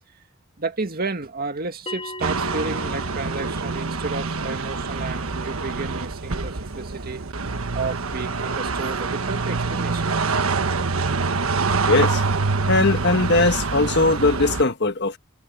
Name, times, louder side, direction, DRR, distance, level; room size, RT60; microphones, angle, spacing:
voice 1, 0.6-7.2 7.7-10.0, right 3 dB, 45° right, 2.1 m, -32 dB
Bell, 1.9-6.9, left 1 dB, 30° left, 2.8 m, -40 dB
sound 1, 2.2-14.6, right 4 dB, 80° right, 1.3 m, -25 dB
voice 2, 11.9-12.2 12.7-15.2, left 2 dB, 55° left, 1.6 m, -20 dB
head